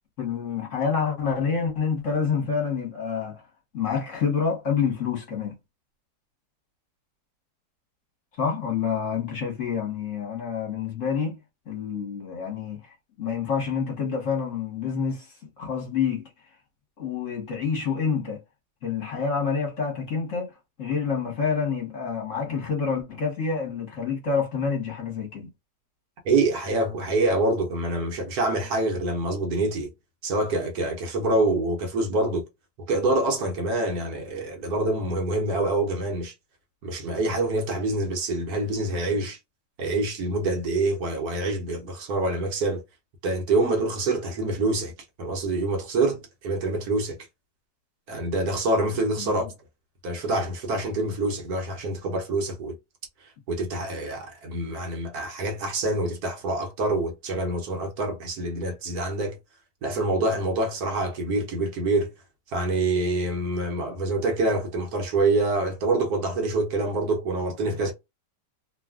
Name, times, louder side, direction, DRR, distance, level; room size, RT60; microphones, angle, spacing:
voice 1, 0.2-3.4 3.7-5.6 8.4-11.4 11.7-16.2 17.0-18.4 18.8-20.5 20.8-25.5 49.2-49.3, left 6 dB, 50° left, 1.3 m, -28 dB
voice 2, 26.2-29.9 30.2-32.5 32.9-36.3 36.8-39.4 39.8-42.8 43.2-44.9 45.2-47.2 48.1-49.5 50.0-52.7 53.2-59.4 59.8-62.1 62.5-67.9, right 2 dB, 65° right, 1.3 m, -26 dB
3.2 x 2.3 x 2.3 m
omnidirectional pair, 1.8 m